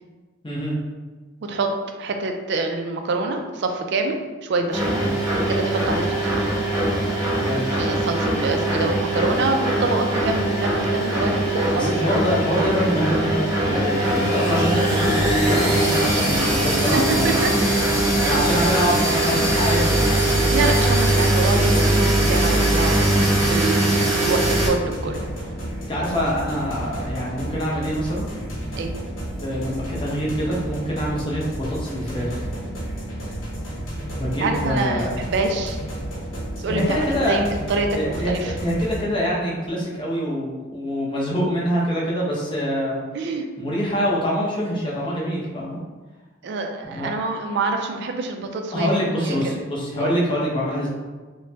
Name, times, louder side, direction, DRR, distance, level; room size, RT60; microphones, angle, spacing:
voice 1, 0.4-0.7 5.0-5.1 7.4-7.7 11.7-17.4 18.2-20.2 25.9-28.2 29.4-32.5 34.1-35.1 36.6-37.4 37.9-38.3 38.6-43.0 43.6-45.8 46.8-47.1 48.7-50.9, equal, 25° left, -5 dB, 0.6 m, -25 dB
voice 2, 2.0-5.0 5.5-6.5 7.8-11.9 16.9-17.5 18.2-18.6 20.5-24.0 24.3-25.3 28.8-29.0 34.4-35.8 36.6-38.5 43.1-43.4 46.4-49.6 50.0-50.2, right 3 dB, 55° right, 4 dB, 0.3 m, -26 dB
sound 1, 4.7-24.7, right 1 dB, 15° right, 0.8 m, -21 dB
sound 2, 24.7-39.0, equal, 75° left, 0.8 m, -32 dB
3.0 x 2.1 x 2.7 m, 1.3 s
head